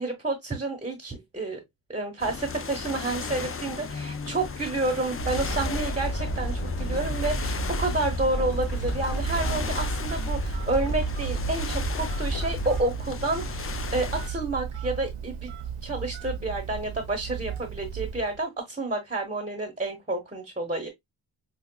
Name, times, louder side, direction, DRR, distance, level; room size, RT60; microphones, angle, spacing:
voice 1, 0.0-1.6 1.9-15.5 15.8-20.9, right 2 dB, 15° right, 1.1 m, -30 dB
sound 1, 2.2-14.3, left 5 dB, 30° left, 0.4 m, -36 dB
sound 2, 5.2-12.8, right 1 dB, 60° left, 1.5 m, -30 dB
Telephone, 8.7-18.4, right 8 dB, 80° right, 0.6 m, -36 dB
5.6 x 2.4 x 2.2 m
wide cardioid pair, 70°, 49 cm